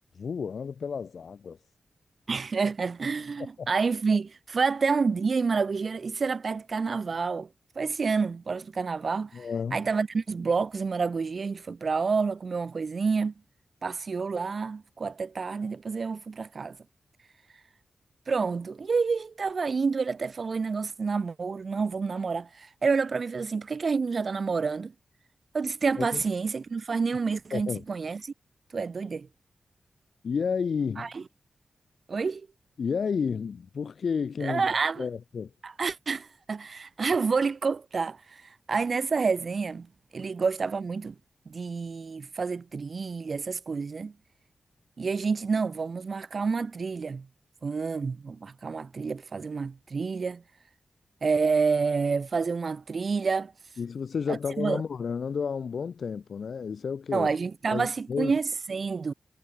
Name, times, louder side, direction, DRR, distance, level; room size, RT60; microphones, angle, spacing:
voice 1, 0.1-1.6 3.6-3.7 9.3-9.8 26.0-26.2 27.5-27.8 30.2-31.1 32.8-34.7 35.0-35.5 53.8-57.3 57.7-58.4, left 6 dB, 65° left, 6.4 m, -31 dB
voice 2, 2.3-7.5 7.7-9.5 9.7-13.3 13.8-16.8 18.3-24.9 25.5-28.3 28.7-29.3 31.0-31.2 32.1-32.5 34.4-35.0 35.6-38.4 38.7-39.9 40.1-41.1 41.5-44.1 45.0-47.3 47.6-50.4 51.2-53.5 54.6-54.8 57.1-59.1, right 4 dB, 50° right, 3.0 m, -28 dB
wide cardioid pair, 125°, 0 cm